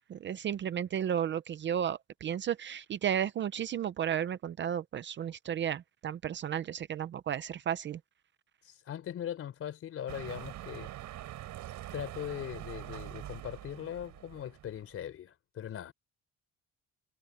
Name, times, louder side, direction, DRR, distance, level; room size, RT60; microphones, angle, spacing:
voice 1, 0.1-8.0, right 9 dB, 35° right, 0.6 m, -33 dB
voice 2, 8.6-10.9 11.9-15.9, left 10 dB, 45° left, 4.2 m, -40 dB
sound 1, 10.1-15.1, right 14 dB, 65° right, 6.6 m, -44 dB
cardioid pair, 180°, 32 cm